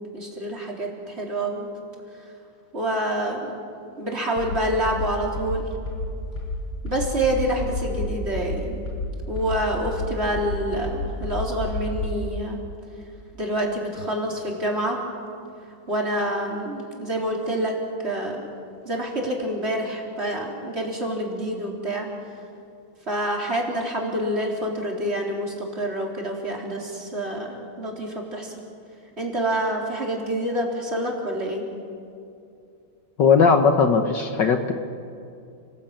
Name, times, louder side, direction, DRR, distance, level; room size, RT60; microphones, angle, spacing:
voice 1, 0.1-1.7 2.7-3.5 4.0-5.7 6.8-8.8 9.3-12.6 13.3-15.0 15.9-17.8 18.0-18.5 18.8-22.1 23.1-28.6 29.2-31.6, right 1 dB, 30° right, -1 dB, 4.2 m, -27 dB
sound 1, 4.4-12.2, left 2 dB, 80° left, 6.6 m, -30 dB
voice 2, 33.2-34.7, left 5 dB, 60° left, 6 dB, 1.9 m, -18 dB
30.0 x 19.5 x 9.0 m, 2.6 s
omnidirectional pair, 2.3 m